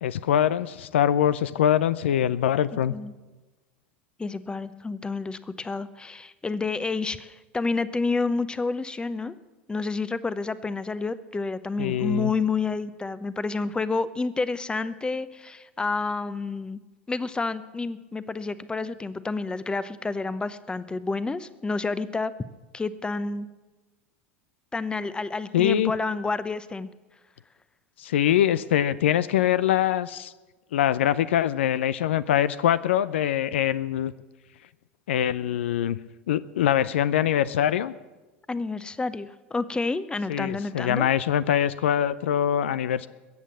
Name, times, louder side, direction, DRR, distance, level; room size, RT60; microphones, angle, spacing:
voice 1, 0.0-3.0 11.8-12.3 25.5-25.9 28.0-30.3 30.7-34.1 35.1-36.0 36.3-37.9 40.3-43.1, left 10 dB, 70° left, 16 dB, 0.5 m, -23 dB
voice 2, 4.2-9.3 9.7-16.8 17.1-22.3 22.7-23.5 24.7-26.9 38.5-41.1, left 3 dB, 15° left, 15 dB, 0.8 m, -29 dB
21.5 x 8.4 x 7.4 m, 1.2 s
figure-of-eight pair, 80°, 7 cm